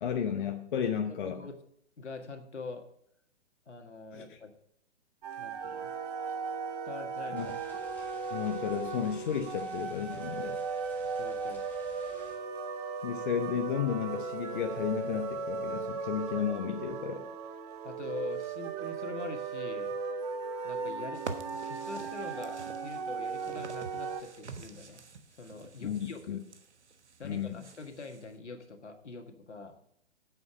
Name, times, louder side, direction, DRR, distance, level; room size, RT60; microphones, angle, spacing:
voice 1, 0.0-1.4 4.1-4.4 7.3-7.5 8.3-10.6 13.0-17.3 25.8-26.4 27.2-27.6, left 8 dB, 45° left, 5 dB, 0.9 m, -33 dB
voice 2, 1.0-1.6 2.0-2.9 3.7-4.5 5.4-5.9 6.8-7.6 11.0-11.6 17.8-20.0 20.6-21.2 21.5-25.0 25.4-26.4 27.2-29.8, left 3 dB, 75° left, 5 dB, 1.7 m, -44 dB
sound 1, 5.2-24.2, right 4 dB, 35° right, 1.0 m, -37 dB
sound 2, 7.3-12.4, left 1 dB, 5° left, 1.6 m, -56 dB
sound 3, 21.1-28.3, right 4 dB, 75° right, 1.2 m, -47 dB
9.6 x 7.8 x 5.0 m, 0.70 s
figure-of-eight pair, 125°, 35 cm